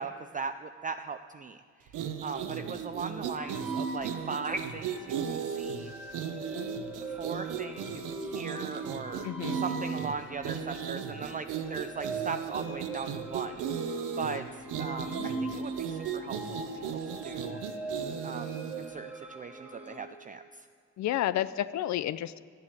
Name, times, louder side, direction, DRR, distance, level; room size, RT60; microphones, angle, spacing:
voice 1, 0.0-5.9 7.0-16.4 16.7-17.6 18.2-20.7, right 5 dB, 25° right, 8 dB, 0.5 m, -39 dB
sound 1, 1.9-18.9, right 7 dB, 85° right, 0.9 m, -36 dB
sound 2, 3.4-20.0, right 3 dB, 5° right, 1.4 m, -41 dB
voice 2, 9.2-9.6 15.2-15.3 21.0-22.4, left 12 dB, 65° left, 15 dB, 0.5 m, -31 dB
12.0 x 8.0 x 8.3 m, 2.1 s
cardioid pair, 90°, 30 cm